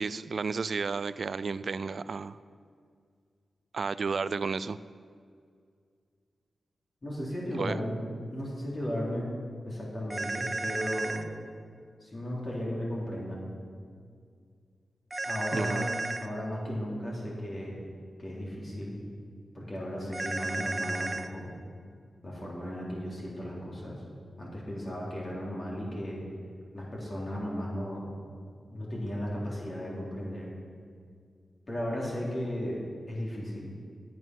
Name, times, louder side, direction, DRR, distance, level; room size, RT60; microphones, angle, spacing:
voice 1, 0.0-2.4 3.7-4.8 7.6-7.8 15.5-15.9, right 4 dB, 65° right, 16 dB, 0.4 m, -32 dB
voice 2, 7.0-8.0 8.3-9.3 9.6-11.3 12.0-13.6 15.2-15.9 16.2-17.8 18.2-19.0 19.5-21.5 22.2-24.0 24.4-26.2 26.7-28.1 28.7-30.5 31.7-33.7, equal, 45° left, -5 dB, 3.6 m, -35 dB
sound 1, 10.1-11.2 15.1-16.3 20.1-21.3, right 2 dB, 25° right, 0.9 m, -33 dB
12.5 x 9.3 x 6.1 m, 2.1 s
cardioid pair, 50°, 0 cm